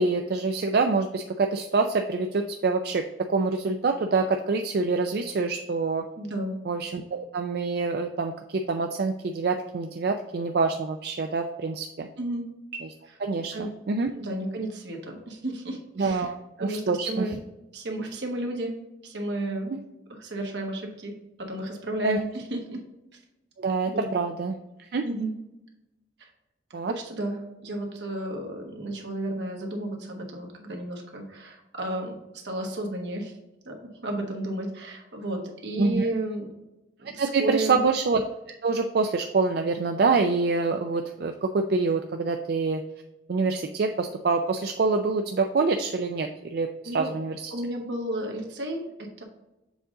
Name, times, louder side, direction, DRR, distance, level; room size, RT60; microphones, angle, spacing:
voice 1, 0.0-3.0 3.3-6.0 6.7-12.1 12.8-12.9 13.2-14.1 16.0-17.4 22.0-22.2 23.6-24.6 24.9-25.0 26.7-26.9 35.8-36.1 37.2-38.2 38.6-42.8 43.3-47.5, right 4 dB, 60° right, 5 dB, 0.4 m, -26 dB
voice 2, 6.2-6.5 12.2-12.5 13.5-13.7 14.1-16.3 16.6-17.4 17.7-18.7 19.0-19.7 20.1-21.1 21.4-22.8 23.9-24.1 25.0-25.3 26.2-26.3 26.9-32.1 32.4-33.3 33.6-36.5 37.1-37.8 46.8-47.1 47.5-49.2, right 1 dB, 80° right, 2 dB, 1.3 m, -32 dB
7.0 x 3.8 x 3.7 m, 0.94 s
head